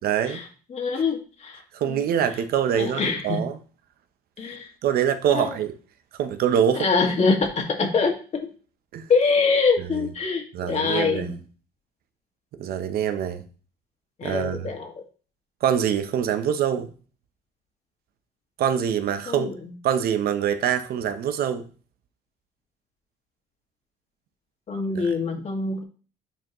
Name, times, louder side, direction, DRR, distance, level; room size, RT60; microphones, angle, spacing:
voice 1, 0.0-0.4 1.7-3.6 4.8-5.7 6.2-6.9 8.9-9.1 9.8-10.1 10.5-11.4 12.6-13.4 14.2-14.7 15.6-16.9 18.6-19.5 19.8-21.6 24.9-25.1, right 9 dB, 65° right, 0.8 m, -24 dB
voice 2, 0.7-1.6 1.9-2.0 2.7-3.4 4.4-4.7 5.3-5.5 6.8-8.2 9.1-11.3 14.2-14.9 19.3-19.5 24.7-25.8, left 4 dB, 40° left, 1.9 m, -24 dB
9.1 x 4.4 x 3.0 m
cardioid pair, 110°, 17 cm